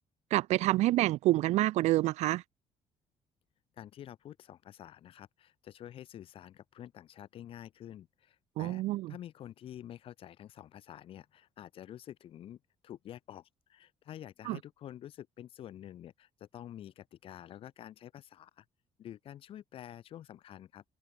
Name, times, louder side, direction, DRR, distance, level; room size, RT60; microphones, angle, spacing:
voice 1, 0.3-2.4 8.6-9.1 14.5-14.6, right 17 dB, 75° right, 0.6 m, -27 dB
voice 2, 3.8-8.8 9.1-18.7 19.0-20.8, left 11 dB, 50° left, 7.0 m, -48 dB
cardioid pair, 165°, 12 cm